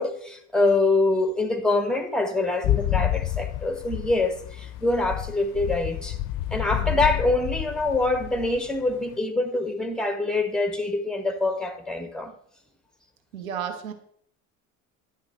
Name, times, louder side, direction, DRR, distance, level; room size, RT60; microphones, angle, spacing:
voice 1, 0.0-6.2 6.5-12.3, left 2 dB, ahead, 1.2 m, -25 dB
sound 1, 2.6-9.1, left 13 dB, 50° left, 0.5 m, -29 dB
voice 2, 6.7-7.2 13.3-13.9, right 8 dB, 85° right, 1.0 m, -34 dB
10.0 x 3.7 x 4.3 m
hypercardioid pair, 60°, 40 cm